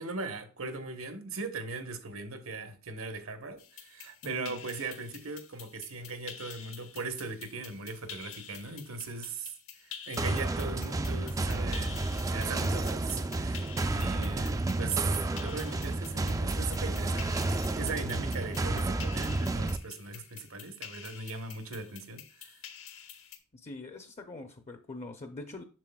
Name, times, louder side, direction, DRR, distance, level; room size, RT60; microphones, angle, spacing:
voice 1, 0.0-9.5 9.8-12.0 12.3-13.7 13.9-22.5, right 4 dB, 75° right, 1.1 m, -39 dB
sound 1, 3.6-23.4, left 9 dB, 70° left, 1.0 m, -49 dB
voice 2, 4.2-4.6 13.8-14.1 23.6-25.6, left 2 dB, 35° left, 0.6 m, -44 dB
sound 2, 10.2-19.8, right 2 dB, 15° right, 0.3 m, -31 dB
sound 3, 11.5-18.3, right 2 dB, 85° left, 1.7 m, -55 dB
7.5 x 6.5 x 2.3 m
head